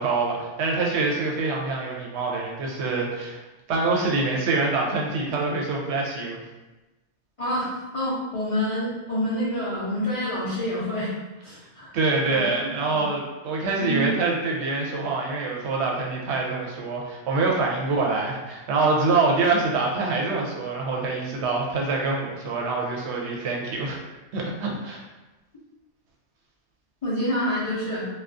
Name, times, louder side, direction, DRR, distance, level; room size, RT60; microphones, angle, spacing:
voice 1, 0.0-3.4 3.7-6.4 11.9-24.0 24.3-25.0, right 3 dB, 70° right, -1 dB, 0.8 m, -25 dB
voice 2, 7.4-11.1 11.4-11.9 12.3-12.4 12.9-13.0 13.8-14.1 27.0-28.1, equal, 45° left, -9 dB, 0.4 m, -27 dB
2.3 x 2.3 x 2.4 m, 1.1 s
omnidirectional pair, 1.2 m